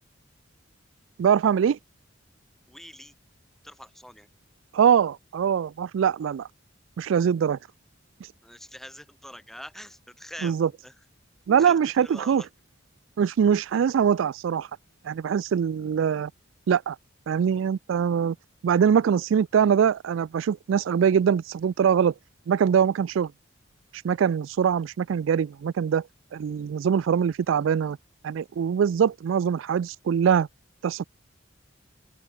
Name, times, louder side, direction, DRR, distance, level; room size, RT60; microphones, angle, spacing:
voice 1, 1.2-1.8 4.7-6.5 7.0-7.6 10.4-10.7 11.5-12.4 13.2-14.7 15.0-16.3 16.7-17.0 17.3-18.4 18.6-22.1 22.5-23.3 24.0-26.1 26.3-28.0 28.2-30.5 30.8-31.0, right 7 dB, 85° right, 0.3 m, -23 dB
voice 2, 2.7-3.1 3.6-4.3 8.4-10.6 10.8-10.9 11.6-12.5, equal, ahead, 5.2 m, -44 dB
head